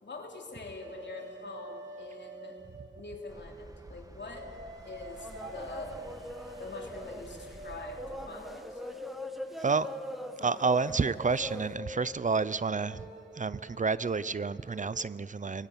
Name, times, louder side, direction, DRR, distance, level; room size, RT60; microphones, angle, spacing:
voice 1, 0.0-2.6 3.0-4.5 4.8-6.1 6.6-8.8, left 3 dB, 75° left, 2 dB, 3.2 m, -44 dB
sound 1, 0.8-3.3 4.3-15.1, equal, 70° right, 2.1 m, -47 dB
sound 2, 3.3-8.3, right 1 dB, 20° right, 1.7 m, -51 dB
sound 3, 5.1-11.8, equal, ahead, 1.7 m, -44 dB
voice 2, 10.4-13.1 13.4-15.7, right 4 dB, 45° right, 17 dB, 0.6 m, -29 dB
19.5 x 17.0 x 9.2 m, 2.3 s
cardioid pair, 50°, 19 cm